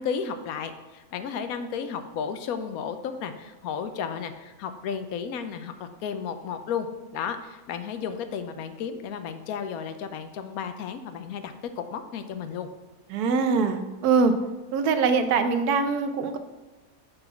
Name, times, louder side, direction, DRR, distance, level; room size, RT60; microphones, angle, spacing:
voice 1, 0.0-12.7, left 7 dB, 75° left, 9 dB, 1.1 m, -33 dB
voice 2, 13.1-14.4 14.7-16.4, right 5 dB, 90° right, 9 dB, 1.2 m, -23 dB
6.9 x 4.0 x 5.7 m, 1.1 s
omnidirectional pair, 1.6 m